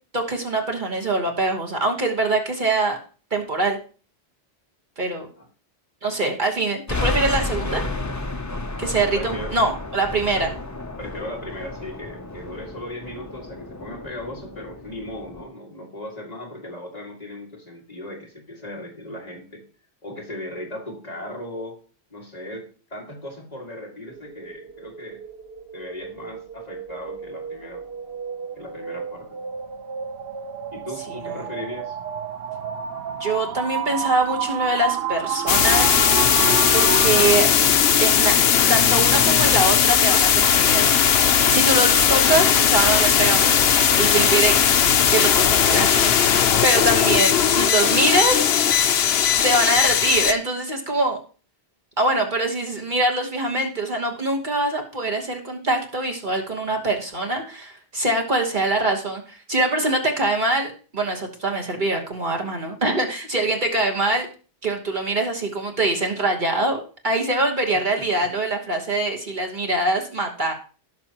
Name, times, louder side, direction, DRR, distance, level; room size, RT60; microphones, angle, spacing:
voice 1, 0.1-3.0 3.3-3.8 5.0-5.3 6.0-7.8 8.8-10.5 31.1-31.5 33.2-36.0 36.7-37.5 38.0-38.3 38.7-40.9 41.5-44.5 45.1-46.4 46.6-48.4 49.4-51.2 52.0-64.3 64.6-70.5, right 2 dB, 50° right, 1 dB, 1.5 m, -23 dB
sound 1, 6.9-15.4, left 2 dB, 20° left, 0.6 m, -31 dB
voice 2, 9.1-9.5 10.4-10.5 11.0-19.6 20.0-21.8 22.1-25.2 25.7-27.8 28.6-29.4 30.7-32.0 67.9-68.3, left 1 dB, 40° left, -2 dB, 2.4 m, -37 dB
sound 2, 24.1-37.3, right 7 dB, 70° right, 0.9 m, -31 dB
sound 3, 35.5-50.3, left 8 dB, 75° left, 0.9 m, -18 dB
16.0 x 6.2 x 3.0 m, 0.38 s
omnidirectional pair, 1.1 m